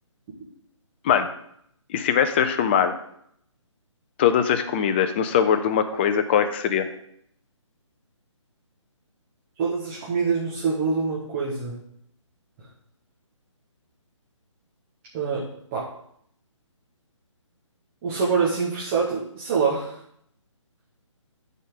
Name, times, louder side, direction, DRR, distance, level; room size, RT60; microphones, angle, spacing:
voice 1, 1.9-2.9 4.2-6.9, left 8 dB, 20° left, 9 dB, 0.5 m, -21 dB
voice 2, 9.6-11.7 15.1-15.9 18.0-19.9, right 5 dB, 25° right, -6 dB, 1.5 m, -25 dB
11.5 x 4.3 x 3.8 m, 0.70 s
figure-of-eight pair, 145°, 16 cm